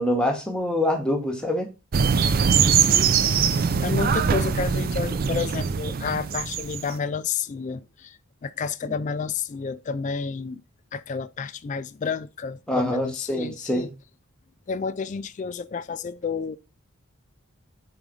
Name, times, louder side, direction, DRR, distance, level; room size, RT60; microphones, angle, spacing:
voice 1, 0.0-1.7 8.8-8.9 12.7-13.9, left 1 dB, 5° left, 1.0 m, -25 dB
sound 1, 1.9-6.9, right 6 dB, 45° right, 0.4 m, -22 dB
voice 2, 2.7-10.6 10.9-13.9 14.7-16.6, left 5 dB, 35° left, 0.3 m, -31 dB
4.8 x 3.8 x 5.1 m
head